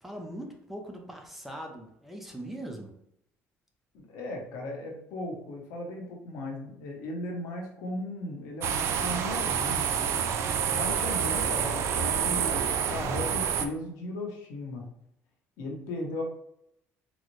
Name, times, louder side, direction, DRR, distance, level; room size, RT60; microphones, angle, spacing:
voice 1, 0.0-2.9, right 1 dB, 5° right, 1 dB, 0.5 m, -41 dB
voice 2, 3.9-10.2 10.7-14.9 15.6-16.2, left 1 dB, 90° left, 1 dB, 0.9 m, -37 dB
sound 1, 8.6-13.7, right 7 dB, 60° right, 0.4 m, -28 dB
4.0 x 2.0 x 3.0 m, 0.76 s
cardioid pair, 140°, 5 cm